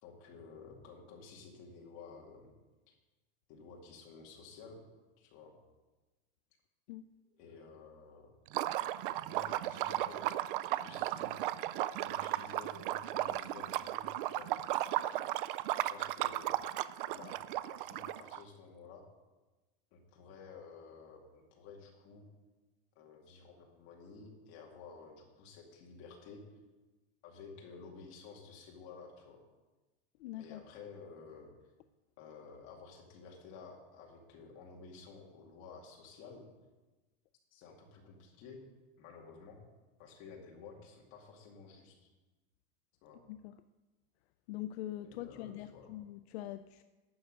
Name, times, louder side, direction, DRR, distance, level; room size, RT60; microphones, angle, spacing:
voice 1, 0.0-2.5 2.9-3.0 3.5-4.9 5.2-5.5 7.4-8.3 9.3-10.2 10.7-11.3 11.9-14.5 15.7-16.5 17.0-17.4 17.7-19.0 19.9-22.3 23.0-26.4 27.2-29.4 30.3-31.5 32.2-36.4 37.5-38.6 39.0-39.6 40.0-42.1 43.0-43.2 45.0-45.9, left 5 dB, 40° left, 0 dB, 2.2 m, -53 dB
Liquid, 8.5-18.4, right 14 dB, 55° right, 0.4 m, -35 dB
voice 2, 30.2-30.6 43.3-43.5 44.5-46.8, left 13 dB, 75° left, 11 dB, 0.5 m, -43 dB
12.0 x 8.1 x 5.2 m, 1.2 s
supercardioid pair, 170°, 32 cm